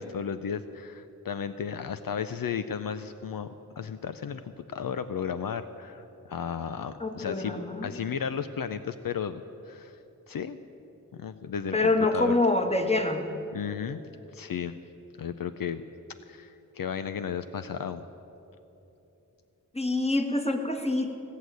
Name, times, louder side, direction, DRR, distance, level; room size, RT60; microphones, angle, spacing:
voice 1, 0.0-7.6 7.8-10.0 10.3-10.6 11.1-12.4 13.5-14.0 14.3-14.8 15.2-15.8 16.3-18.0, left 7 dB, 70° left, 11 dB, 0.5 m, -34 dB
voice 2, 7.0-7.9 11.7-13.3 19.7-21.1, left 2 dB, 15° left, 5 dB, 1.5 m, -26 dB
17.0 x 6.5 x 9.2 m, 2.9 s
cardioid pair, 45°, 35 cm